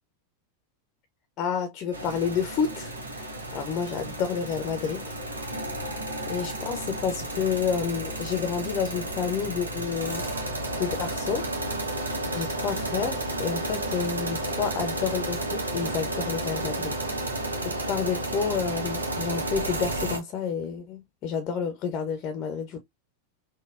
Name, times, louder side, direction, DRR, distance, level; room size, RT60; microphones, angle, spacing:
voice 1, 1.4-5.1 6.3-10.3 10.8-11.5 12.3-16.9 17.2-17.5 17.9-22.8, left 6 dB, 35° left, 0.6 m, -30 dB
sound 1, 1.9-20.2, right 1 dB, 75° right, 0.8 m, -32 dB
3.9 x 2.2 x 2.3 m
figure-of-eight pair, 90°, 0 cm